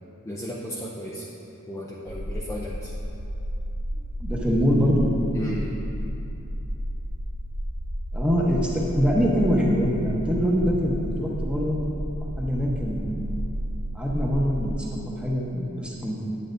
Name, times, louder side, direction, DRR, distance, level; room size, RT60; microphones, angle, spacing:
voice 1, 0.2-1.3 1.7-2.9 5.3-5.8, equal, 15° left, -5 dB, 0.5 m, -34 dB
sound 1, 2.1-14.7, equal, 55° right, 0.6 m, -32 dB
voice 2, 4.2-5.1 8.1-11.8 12.2-13.2 13.9-16.2, equal, 5° right, -3 dB, 0.9 m, -24 dB
10.0 x 8.6 x 2.6 m, 2.9 s
head